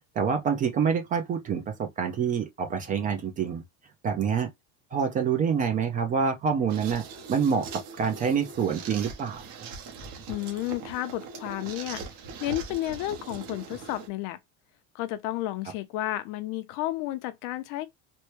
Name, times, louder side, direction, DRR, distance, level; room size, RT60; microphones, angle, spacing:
voice 1, 0.2-3.6 4.0-4.5 4.9-7.0 7.3-9.4, right 6 dB, 25° right, 0.4 m, -26 dB
sound 1, 6.7-14.1, right 5 dB, 70° right, 1.3 m, -41 dB
voice 2, 10.3-12.0 12.4-14.4 14.9-17.9, left 15 dB, 60° left, 0.6 m, -32 dB
4.4 x 2.2 x 3.1 m
cardioid pair, 175°, 36 cm